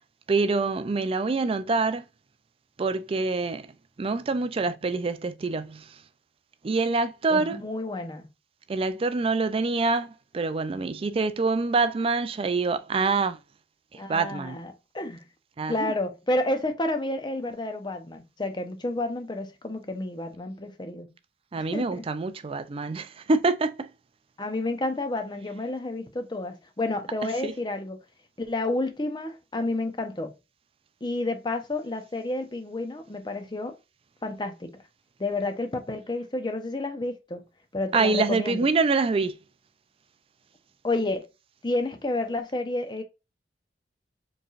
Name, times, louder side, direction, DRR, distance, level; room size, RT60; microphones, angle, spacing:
voice 1, 0.3-2.0 2.8-3.7 4.0-5.8 6.6-7.6 8.7-13.4 14.1-14.6 15.6-15.9 21.5-23.9 27.4-27.5 37.9-39.4, right 3 dB, 35° right, 0.4 m, -25 dB
voice 2, 7.3-8.3 13.9-15.2 15.7-21.1 21.6-22.0 24.4-28.0 28.4-30.3 31.0-33.8 34.2-34.8 35.2-37.4 37.7-38.7 40.8-41.2 41.6-43.0, left 2 dB, 25° left, 0.7 m, -30 dB
4.9 x 3.2 x 2.4 m
head